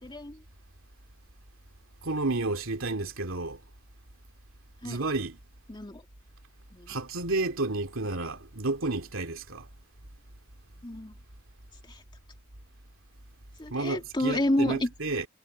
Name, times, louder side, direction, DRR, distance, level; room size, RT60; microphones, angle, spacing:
voice 1, 0.0-0.4 4.8-5.0 5.7-6.0 6.7-7.0 10.8-11.1 11.9-12.0 13.6-14.9, left 1 dB, 20° left, 2.5 m, -29 dB
voice 2, 2.0-3.6 4.8-5.4 6.9-9.7 13.7-15.3, right 2 dB, 65° right, 2.8 m, -31 dB
head